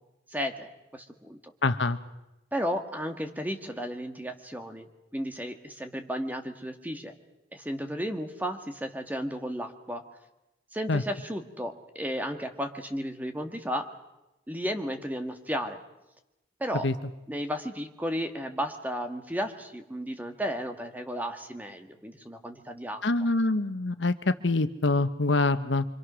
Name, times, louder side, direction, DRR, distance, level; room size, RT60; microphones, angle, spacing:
voice 1, 0.3-1.5 2.5-4.9 5.1-7.1 7.5-10.0 10.7-13.9 14.5-15.8 16.6-16.9 17.3-23.0, equal, 10° right, 6 dB, 1.7 m, -34 dB
voice 2, 1.6-2.0 10.9-11.0 16.8-16.9 23.0-25.8, left 2 dB, 80° left, 11 dB, 1.1 m, -25 dB
27.0 x 25.0 x 6.3 m, 0.97 s
head